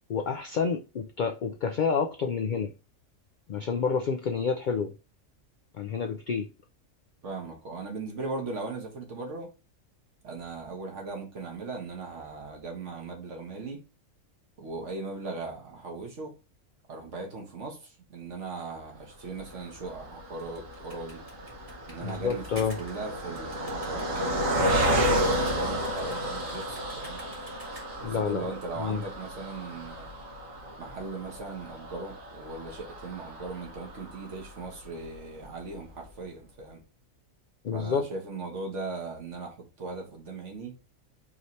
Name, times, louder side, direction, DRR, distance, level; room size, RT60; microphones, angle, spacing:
voice 1, 0.1-2.7 3.5-4.9 5.7-6.5 22.0-22.7 28.0-28.4 28.8-29.0 37.6-38.1, left 6 dB, 85° left, 0.4 m, -29 dB
voice 2, 7.2-9.5 10.2-13.8 14.6-16.3 16.9-21.2 21.9-27.2 28.0-30.1 30.8-36.8 37.7-40.8, right 3 dB, 65° right, 1.5 m, -38 dB
Car passing by, 19.4-34.9 35.4-35.5 35.7-35.9, equal, 80° right, 1.7 m, -32 dB
sound 1, 20.4-28.1, right 1 dB, 40° right, 1.7 m, -50 dB
4.8 x 2.8 x 3.1 m
omnidirectional pair, 1.4 m